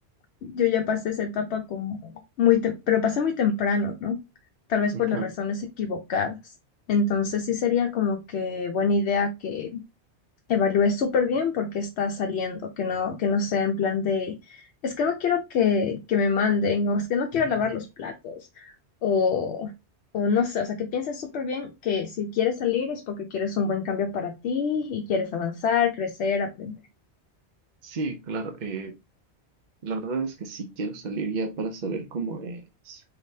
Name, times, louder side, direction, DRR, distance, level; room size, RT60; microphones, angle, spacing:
voice 1, 0.4-4.2 4.7-6.4 6.9-9.8 10.5-18.7 19.0-19.7 20.1-26.7, left 6 dB, 75° left, 4 dB, 0.9 m, -25 dB
voice 2, 4.9-5.3 27.8-28.9 29.8-33.0, right 4 dB, 50° right, 4 dB, 0.7 m, -32 dB
3.9 x 3.4 x 2.7 m, 0.24 s
omnidirectional pair, 1.2 m